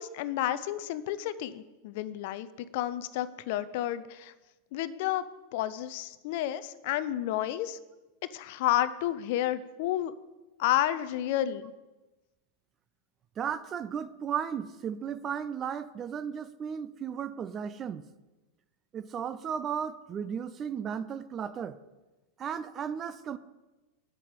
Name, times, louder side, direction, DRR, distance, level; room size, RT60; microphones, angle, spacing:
voice 1, 0.0-2.5 2.7-4.3 4.7-5.3 5.5-7.8 8.3-10.1 10.6-11.7, left 13 dB, 50° left, 0.5 m, -31 dB
voice 2, 13.4-18.1 18.9-21.8 22.4-23.4, right 7 dB, 25° right, 0.4 m, -35 dB
9.0 x 8.6 x 5.1 m
figure-of-eight pair, 90°, 0 cm